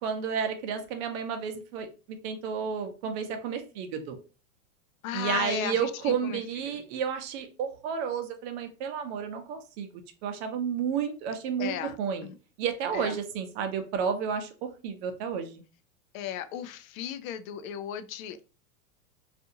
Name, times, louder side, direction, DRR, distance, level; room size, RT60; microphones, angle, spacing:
voice 1, 0.0-4.2 5.1-9.9 10.2-12.3 12.6-15.6, right 7 dB, 50° right, 0.7 m, -31 dB
voice 2, 5.0-6.8 11.6-12.4 12.9-13.2 16.1-18.5, left 10 dB, 70° left, 0.5 m, -36 dB
2.6 x 2.5 x 2.6 m
hypercardioid pair, 125°, 43 cm